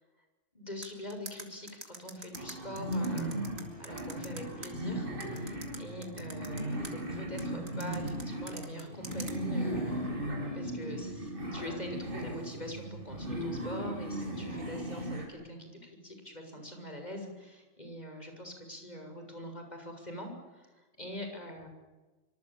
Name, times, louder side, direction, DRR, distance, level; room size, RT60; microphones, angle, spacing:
voice 1, 0.5-3.5 3.8-21.7, left 1 dB, 30° left, 4 dB, 7.1 m, -44 dB
sound 1, 0.8-4.7 5.2-6.9 7.4-9.3, right 3 dB, 85° right, 3.9 m, -44 dB
sound 2, 2.3-15.3, right 1 dB, 40° right, 6.2 m, -37 dB
25.5 x 25.5 x 8.8 m, 1.2 s
omnidirectional pair, 1.4 m